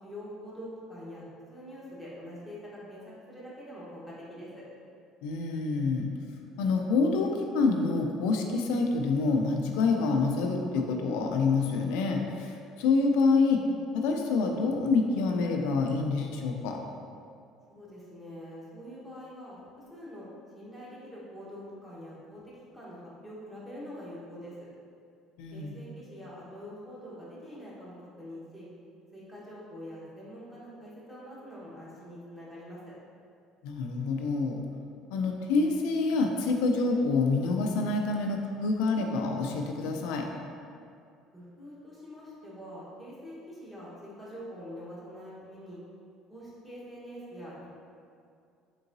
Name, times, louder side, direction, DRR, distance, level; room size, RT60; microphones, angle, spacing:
voice 1, 0.0-3.0 3.3-4.7 17.7-20.3 20.5-22.4 22.7-24.5 25.5-28.7 29.1-32.8 41.3-45.8 46.3-47.7, equal, 5° right, -8 dB, 1.1 m, -45 dB
voice 2, 5.2-6.1 6.6-13.6 13.9-16.8 25.4-25.8 33.6-34.6 35.1-40.3, left 4 dB, 85° left, 2 dB, 0.3 m, -27 dB
3.9 x 3.7 x 2.6 m, 2.4 s
cardioid pair, 115°, 0 cm